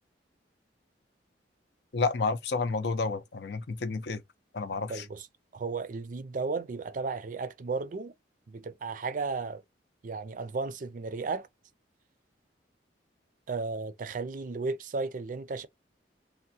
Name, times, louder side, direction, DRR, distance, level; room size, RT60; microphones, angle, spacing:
voice 1, 1.9-4.2 4.5-5.0, left 4 dB, 65° left, 0.5 m, -30 dB
voice 2, 4.9-5.3 5.5-8.1 8.5-9.6 10.0-11.5 13.5-15.7, right 4 dB, 45° right, 0.4 m, -34 dB
3.5 x 2.1 x 2.7 m
head